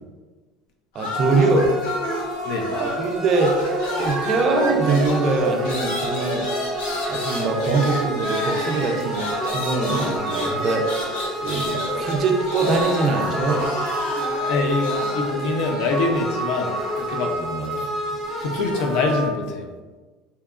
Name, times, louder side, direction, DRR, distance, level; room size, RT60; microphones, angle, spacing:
sound 1, 0.9-3.1 3.3-15.3, left 1 dB, 85° left, 0.7 m, -30 dB
voice 1, 0.9-1.7 2.7-3.5 4.0-6.5 7.1-10.9 11.4-13.7 17.4-17.9, right 3 dB, 35° right, 2 dB, 0.3 m, -23 dB
sound 2, 1.1-19.3, right 1 dB, 5° right, 0.7 m, -29 dB
voice 2, 14.5-17.3 17.8-18.2 18.4-19.7, left 3 dB, 55° left, 2 dB, 0.4 m, -25 dB
2.7 x 2.2 x 2.3 m, 1.3 s
cardioid pair, 165°, 0 cm